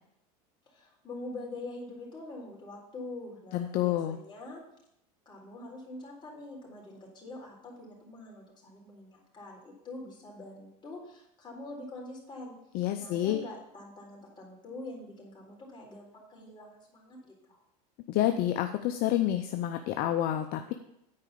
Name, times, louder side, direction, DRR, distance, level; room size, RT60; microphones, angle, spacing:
voice 1, 0.7-4.6 5.3-12.5 13.0-17.6, left 2 dB, 20° left, -3 dB, 3.9 m, -44 dB
voice 2, 3.5-4.2 12.7-13.4 18.1-20.7, left 12 dB, 50° left, 7 dB, 0.6 m, -28 dB
9.6 x 4.9 x 6.9 m, 0.80 s
supercardioid pair, 115°, 20 cm